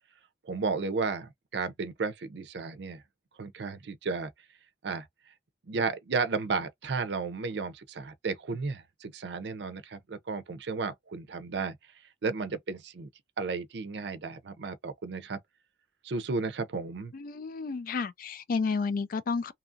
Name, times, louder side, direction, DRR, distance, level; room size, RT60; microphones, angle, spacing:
voice 1, 0.4-3.0 3.4-4.3 4.8-5.1 5.7-11.8 12.2-13.1 13.4-15.4 16.0-17.1, right 4 dB, 70° right, 0.5 m, -33 dB
voice 2, 17.1-19.5, left 4 dB, 50° left, 0.3 m, -31 dB
2.8 x 2.4 x 2.6 m
head